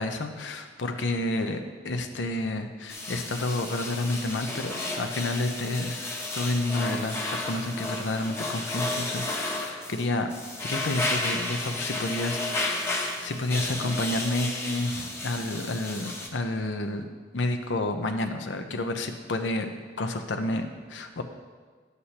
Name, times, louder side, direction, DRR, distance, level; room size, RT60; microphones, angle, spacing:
voice 1, 0.0-10.3 10.6-19.7 20.0-21.2, left 2 dB, 85° left, 6 dB, 0.7 m, -30 dB
sound 1, 2.9-16.3, left 2 dB, 15° left, 0.9 m, -33 dB
11.0 x 8.2 x 2.9 m, 1.5 s
head